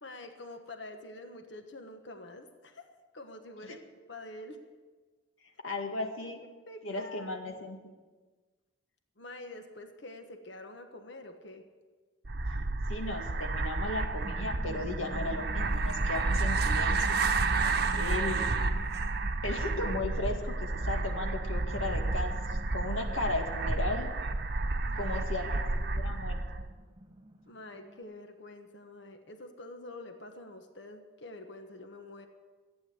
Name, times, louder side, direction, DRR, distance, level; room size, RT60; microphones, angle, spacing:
voice 1, 0.0-2.9 3.1-3.8 4.1-4.6 6.2-6.3 6.7-7.4 9.2-11.6 17.6-17.7 24.8-25.2 27.5-32.3, left 2 dB, 65° left, 6 dB, 1.3 m, -46 dB
voice 2, 5.6-6.4 6.8-7.8 12.9-17.2 17.9-18.5 19.4-22.3 22.7-24.1 24.9-26.4, left 2 dB, 90° left, 3 dB, 2.1 m, -35 dB
sound 1, 12.2-26.7, right 3 dB, 55° right, 0.9 m, -31 dB
sound 2, 13.9-28.0, equal, 25° right, 1.5 m, -48 dB
15.0 x 9.5 x 8.0 m, 1.3 s
head